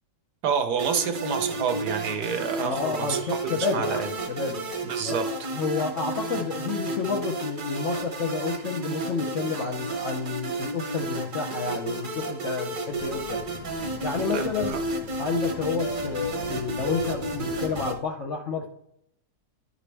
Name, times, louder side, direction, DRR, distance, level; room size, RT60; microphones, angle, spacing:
voice 1, 0.4-4.1 4.8-5.2 14.3-14.8, right 6 dB, 70° right, 6 dB, 1.3 m, -28 dB
sound 1, 0.8-17.9, right 2 dB, 35° right, 0.9 m, -32 dB
voice 2, 2.6-4.6 5.0-5.2 5.5-13.4 14.0-14.7 15.2-18.7, left 5 dB, 60° left, 1 dB, 0.8 m, -30 dB
Fixed-wing aircraft airplane, 12.9-17.9, left 7 dB, 75° left, 1.5 m, -39 dB
10.5 x 5.1 x 3.3 m, 0.74 s
omnidirectional pair, 1.9 m